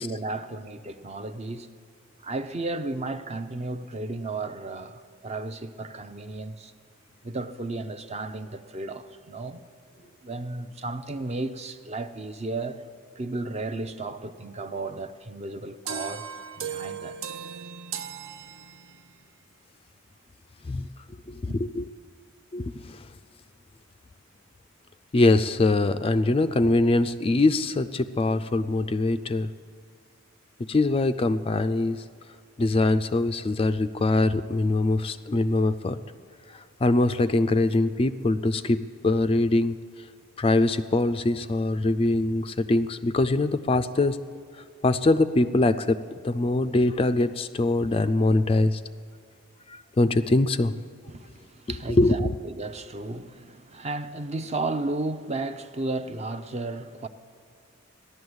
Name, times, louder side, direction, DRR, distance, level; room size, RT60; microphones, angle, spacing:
voice 1, 0.0-1.7 2.2-6.7 7.2-9.7 10.2-12.8 13.2-16.3 16.6-17.2 21.4-21.6 51.1-57.1, right 2 dB, 30° right, 0.6 m, -34 dB
sound 1, 15.9-19.2, right 7 dB, 70° right, 0.7 m, -37 dB
voice 2, 21.3-21.9 22.5-23.1 25.1-29.5 30.7-32.0 32.6-36.0 36.5-39.8 40.4-44.2 44.5-46.0 46.2-48.8 49.7-50.7 51.9-52.3, left 2 dB, 25° left, 0.3 m, -23 dB
15.5 x 11.5 x 7.9 m
head